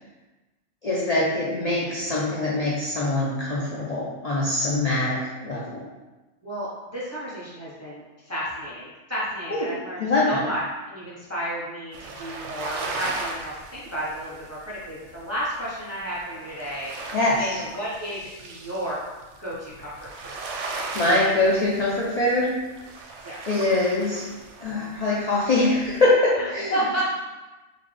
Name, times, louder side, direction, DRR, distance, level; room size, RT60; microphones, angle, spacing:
voice 1, 0.8-5.8 9.5-9.7 10.0-10.4 17.1-17.6 20.9-22.5 23.5-24.3 24.6-27.0, left 2 dB, 50° left, -6 dB, 0.4 m, -23 dB
voice 2, 6.4-16.9 17.4-19.1 19.4-20.3 23.2-23.4 26.4-27.0, right 1 dB, 20° right, -8 dB, 0.5 m, -32 dB
sound 1, 11.9-25.1 25.4-26.1, right 3 dB, 70° right, 0.8 m, -37 dB
3.9 x 2.3 x 3.2 m, 1.1 s
omnidirectional pair, 1.3 m